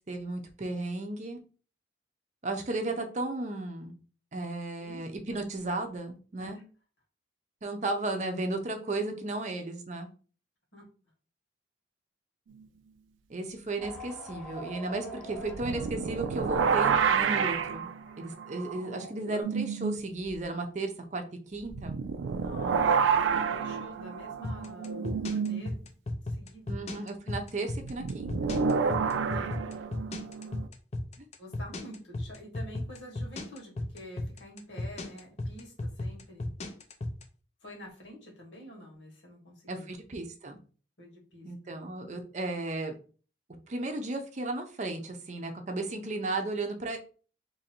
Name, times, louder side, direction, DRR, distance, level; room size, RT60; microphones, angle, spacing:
voice 1, 0.1-1.4 2.4-3.9 4.3-6.6 7.6-10.1 13.3-17.9 18.2-22.0 26.7-28.3 31.2-31.3 39.7-40.6 41.4-42.9 43.7-47.0, right 2 dB, 40° right, 5 dB, 0.6 m, -34 dB
voice 2, 6.3-6.6 10.7-10.8 22.2-25.9 26.2-26.8 29.3-29.7 31.4-36.5 37.6-39.9 41.0-41.7, equal, 80° left, -1 dB, 1.7 m, -48 dB
sound 1, 13.8-18.2 18.7-18.8 19.0-19.4, right 1 dB, ahead, 0.8 m, -45 dB
sound 2, 15.5-20.0 20.3-20.4 21.7-25.7 27.8-30.7, right 6 dB, 85° right, 0.3 m, -29 dB
sound 3, 24.4-37.2, left 2 dB, 35° left, 0.5 m, -34 dB
3.0 x 2.6 x 4.3 m, 0.38 s
head